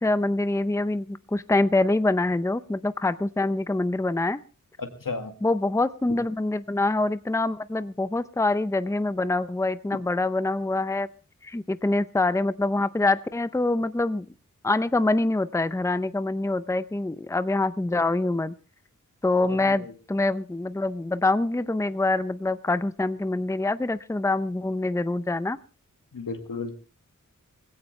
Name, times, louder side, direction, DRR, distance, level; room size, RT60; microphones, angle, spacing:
voice 1, 0.0-4.4 5.4-11.1 11.4-14.3 14.6-18.5 19.2-25.6, left 2 dB, 10° left, 14 dB, 0.7 m, -25 dB
voice 2, 4.8-5.3 19.6-19.9 26.1-26.7, left 4 dB, 80° left, 6 dB, 2.0 m, -34 dB
19.5 x 16.5 x 3.3 m, 0.34 s
cardioid pair, 45°, 32 cm